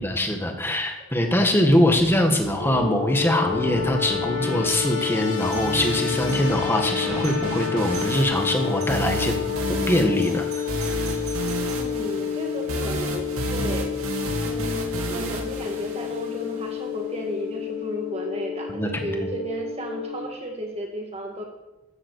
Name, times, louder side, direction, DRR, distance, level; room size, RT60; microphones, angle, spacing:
voice 1, 0.0-9.4 9.7-11.1 18.7-19.3, left 1 dB, 10° left, 4 dB, 1.5 m, -23 dB
sound 1, 1.7-16.7, right 2 dB, 90° right, 2.6 m, -33 dB
sound 2, 2.5-20.2, left 7 dB, 50° left, 4.7 m, -29 dB
Doorbell, 4.6-4.9 5.3-6.6 6.9-7.0 7.2-7.5 7.9-8.2 8.8-9.2 10.2-11.9, right 5 dB, 50° right, 3.8 m, -43 dB
voice 2, 11.6-14.1 14.4-21.4, equal, 30° right, 1 dB, 1.9 m, -34 dB
13.5 x 7.4 x 8.2 m, 0.99 s
head